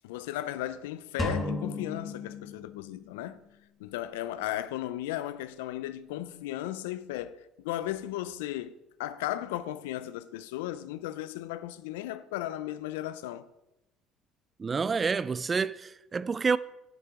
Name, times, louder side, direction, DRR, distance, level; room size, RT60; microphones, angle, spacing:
voice 1, 0.0-3.4 3.8-8.7 9.0-13.5, left 13 dB, 90° left, 0.4 m, -36 dB
sound 1, 1.2-3.2, left 2 dB, 15° left, 1.7 m, -34 dB
voice 2, 14.6-16.6, right 5 dB, 30° right, 0.3 m, -28 dB
6.7 x 6.2 x 4.6 m
supercardioid pair, 80°, 0 cm